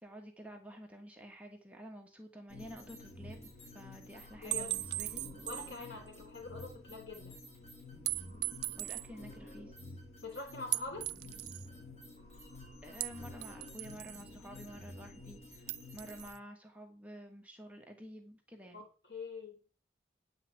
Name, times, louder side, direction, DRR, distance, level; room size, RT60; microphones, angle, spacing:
voice 1, 0.0-5.2 8.8-10.0 12.8-18.9, equal, 5° right, 2 dB, 1.5 m, -50 dB
sound 1, 2.5-16.3, left 1 dB, 35° left, 7.2 m, -51 dB
voice 2, 4.4-4.8 5.5-7.4 10.2-11.1 18.7-19.6, left 3 dB, 65° left, 2 dB, 4.0 m, -45 dB
sound 2, 4.5-5.8 6.1-6.2 8.1-9.1 10.7-11.7 13.0-14.3 15.7-16.4, right 18 dB, 60° right, 0.4 m, -38 dB
9.3 x 5.8 x 8.2 m, 0.37 s
head